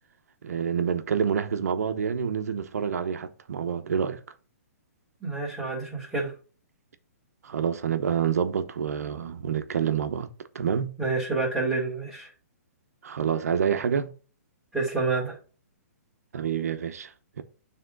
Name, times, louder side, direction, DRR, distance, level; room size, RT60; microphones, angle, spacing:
voice 1, 0.4-4.2 7.4-10.3 10.5-10.9 13.0-14.1 16.3-17.4, right 7 dB, 70° right, 0.9 m, -27 dB
voice 2, 5.2-6.3 11.0-12.3 14.7-15.4, right 3 dB, ahead, 2.2 m, -28 dB
9.3 x 3.6 x 3.8 m
hypercardioid pair, 170°, 9 cm